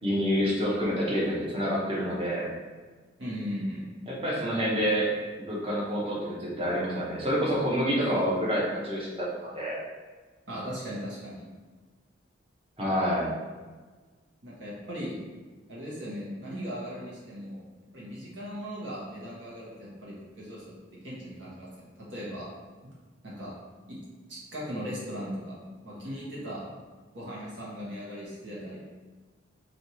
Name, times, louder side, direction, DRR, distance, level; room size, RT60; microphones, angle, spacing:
voice 1, 0.0-2.5 4.1-5.1 5.4-9.8 12.8-13.3, equal, 30° right, -5 dB, 0.9 m, -28 dB
voice 2, 3.2-3.8 8.0-8.2 10.5-11.5 14.4-15.2 15.7-17.6 17.9-22.5 23.2-23.5 23.9-24.0 24.3-25.6 25.8-26.6 27.1-28.8, equal, 70° right, -6 dB, 1.3 m, -38 dB
3.2 x 2.8 x 4.3 m, 1.4 s
head